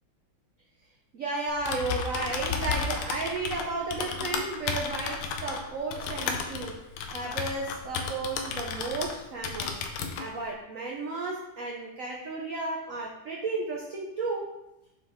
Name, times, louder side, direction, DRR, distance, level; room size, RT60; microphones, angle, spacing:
voice 1, 1.1-6.8 7.1-9.8 10.2-14.5, right 3 dB, 65° right, -2 dB, 0.8 m, -33 dB
Typing, 1.5-9.2 9.4-10.3, left 5 dB, 85° left, 1.6 m, -33 dB
6.3 x 4.4 x 3.5 m, 0.88 s
omnidirectional pair, 2.4 m